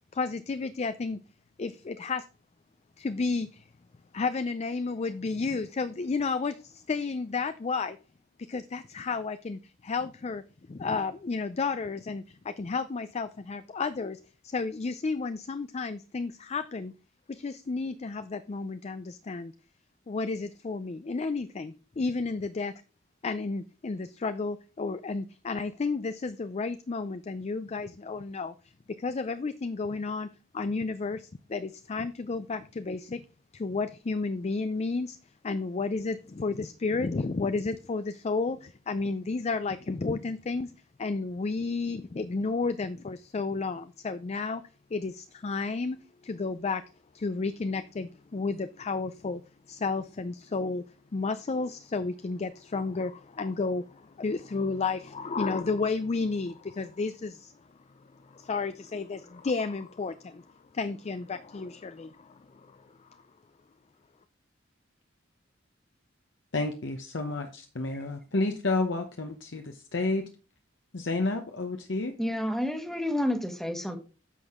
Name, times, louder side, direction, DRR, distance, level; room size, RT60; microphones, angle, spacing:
voice 1, 0.1-1.2 1.6-2.2 3.0-3.6 4.1-8.0 8.5-10.4 10.7-16.9 17.3-19.5 20.1-22.7 23.2-28.5 29.0-30.3 30.5-33.2 33.5-35.2 35.4-40.7 41.0-44.6 44.9-46.0 46.2-46.8 47.1-49.4 49.7-50.8 51.1-57.5 58.2-60.4 60.7-63.1, left 4 dB, 35° left, 11 dB, 0.4 m, -32 dB
voice 2, 66.5-70.3 70.9-72.1, left 2 dB, 65° left, 4 dB, 0.9 m, -30 dB
voice 3, 72.2-74.0, left 1 dB, ahead, 6 dB, 1.3 m, -29 dB
9.9 x 6.2 x 3.6 m, 0.35 s
head